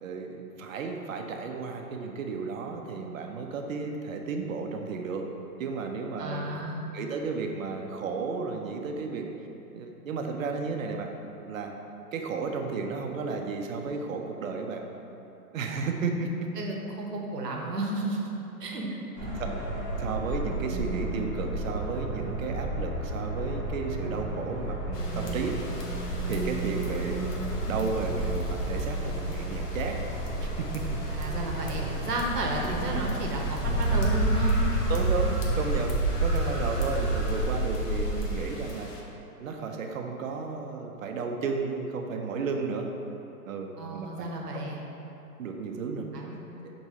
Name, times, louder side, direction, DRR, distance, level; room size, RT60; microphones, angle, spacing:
voice 1, 0.0-5.3 5.6-6.6 6.9-9.3 9.7-11.1 11.5-11.7 12.1-14.8 15.5-16.5 19.4-19.5 20.0-25.6 26.3-27.3 27.7-30.0 30.4-31.0 34.9-38.9 39.4-42.9 43.5-44.6 45.4-46.7, right 4 dB, 60° right, 3 dB, 0.6 m, -33 dB
voice 2, 6.2-6.8 16.6-18.2 18.6-18.9 19.2-19.3 31.1-34.6 43.8-44.8 46.1-46.4, right 1 dB, 80° right, 0 dB, 0.9 m, -32 dB
sound 1, 19.2-38.5, right 1 dB, 10° left, 0.4 m, -30 dB
sound 2, 24.9-39.0, left 2 dB, 85° left, 0.8 m, -46 dB
6.1 x 3.0 x 2.7 m, 3.0 s
hypercardioid pair, 125°, 47 cm